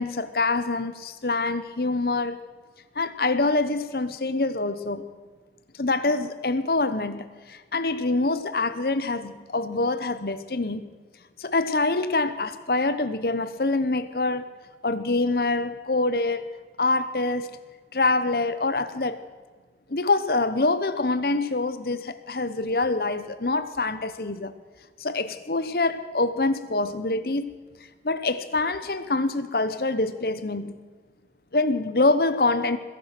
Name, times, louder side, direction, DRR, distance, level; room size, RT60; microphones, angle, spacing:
voice 1, 0.0-2.4 2.9-5.1 5.8-10.9 11.4-14.5 14.8-16.4 16.8-17.5 17.9-19.2 19.9-24.5 25.0-27.6 28.0-30.8 31.5-32.8, left 3 dB, 55° left, 1.0 m, -25 dB
21.5 x 11.0 x 6.1 m
head